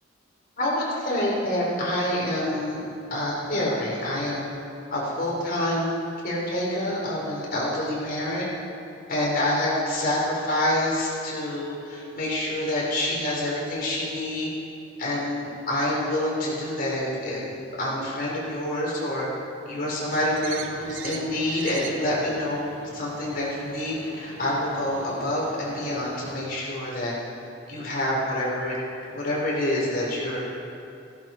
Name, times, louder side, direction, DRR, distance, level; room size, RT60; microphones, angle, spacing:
voice 1, 0.6-2.8 3.1-4.4 4.9-6.0 6.2-8.5 9.1-14.5 15.0-19.2 19.7-27.1 27.7-28.8 29.1-30.4, left 1 dB, 50° left, -5 dB, 4.4 m, -27 dB
sound 1, 20.1-26.4, right 5 dB, 85° right, 0.9 m, -41 dB
15.5 x 15.0 x 4.6 m, 2.7 s
head